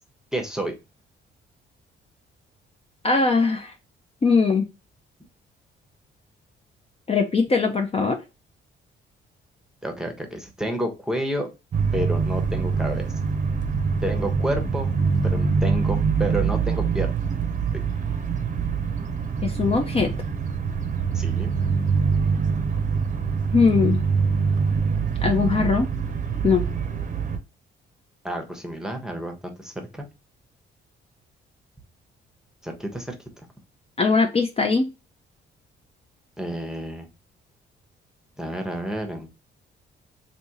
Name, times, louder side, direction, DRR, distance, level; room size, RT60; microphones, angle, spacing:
voice 1, 0.3-0.8 9.8-11.5 11.9-13.1 14.0-14.9 15.2-17.1 17.7-17.8 21.1-21.5 28.2-30.0 32.6-33.1 36.4-37.1 38.4-39.3, right 1 dB, 5° right, 4 dB, 0.9 m, -30 dB
voice 2, 3.0-3.7 4.2-4.7 7.1-8.2 19.4-20.1 23.5-24.0 25.2-25.9 26.4-26.6 34.0-34.9, left 4 dB, 30° left, 4 dB, 0.6 m, -20 dB
sound 1, 11.7-27.4, right 5 dB, 40° right, 0.7 m, -24 dB
3.4 x 2.7 x 2.8 m, 0.27 s
cardioid pair, 90°, 20 cm